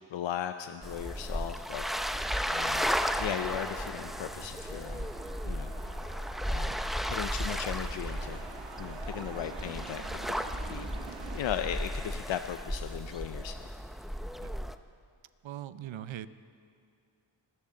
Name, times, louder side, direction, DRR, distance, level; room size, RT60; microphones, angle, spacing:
voice 1, 0.1-1.8 2.5-2.9 3.2-5.1 5.4-5.7 6.5-6.7 7.0-8.4 8.8-10.0 10.7-10.9 11.3-13.7, left 10 dB, 80° left, 9 dB, 0.6 m, -37 dB
sound 1, 0.8-14.8, equal, ahead, 0.5 m, -34 dB
sound 2, 2.6-11.4, right 5 dB, 70° right, 1.3 m, -47 dB
voice 2, 15.4-16.3, right 12 dB, 90° right, 14 dB, 0.7 m, -41 dB
24.5 x 14.0 x 3.8 m, 2.3 s
cardioid pair, 75°, 45 cm